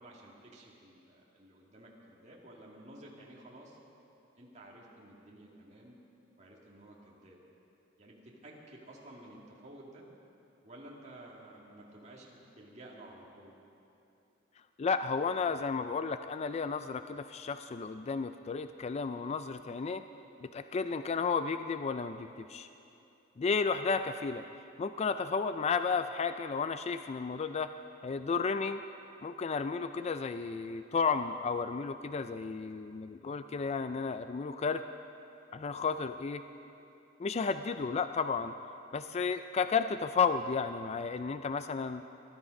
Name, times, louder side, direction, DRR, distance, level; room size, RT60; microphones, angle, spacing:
voice 1, 0.0-3.8 4.4-5.9 6.4-7.4 8.0-10.1 10.6-13.5, right 1 dB, 35° right, -3 dB, 1.9 m, -53 dB
voice 2, 14.8-20.0 20.4-22.7 23.4-24.4 24.8-27.7 28.0-28.8 29.2-34.8 35.5-36.4 37.2-38.5 38.9-42.0, left 5 dB, 35° left, 10 dB, 0.3 m, -33 dB
19.5 x 12.5 x 5.2 m, 2.8 s
head